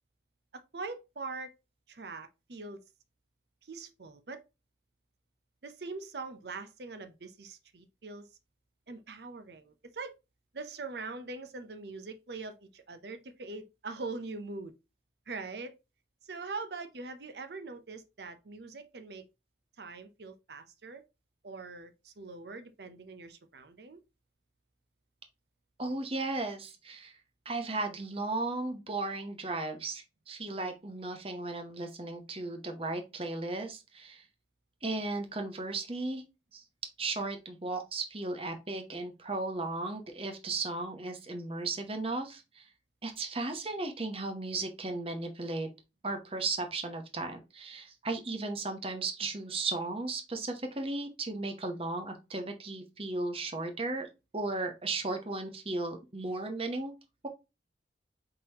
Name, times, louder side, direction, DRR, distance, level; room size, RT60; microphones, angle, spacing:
voice 1, 0.5-1.5 1.9-2.8 3.6-4.4 5.6-8.3 8.9-10.1 10.5-14.7 15.3-15.7 16.2-19.2 19.8-21.0 21.4-24.0, right 3 dB, 65° right, 0.7 m, -42 dB
voice 2, 25.8-27.1 27.4-34.2 34.8-36.2 36.5-36.6 37.0-42.7 43.0-45.7 46.0-54.1 54.3-56.9, right 3 dB, 30° right, 0.9 m, -35 dB
4.8 x 3.7 x 2.8 m
head